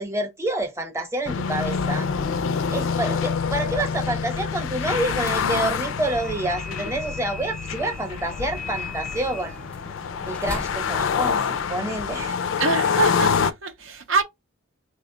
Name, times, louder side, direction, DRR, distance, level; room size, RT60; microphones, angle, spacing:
voice 1, 0.0-2.1 2.7-9.5 10.2-12.4, right 1 dB, 15° right, 0.8 m, -28 dB
sound 1, 1.2-13.5, left 6 dB, 75° left, 0.4 m, -26 dB
sound 2, 6.0-11.9, left 2 dB, 5° left, 0.5 m, -38 dB
voice 2, 12.6-14.2, right 3 dB, 70° right, 0.6 m, -24 dB
3.3 x 2.2 x 3.7 m
head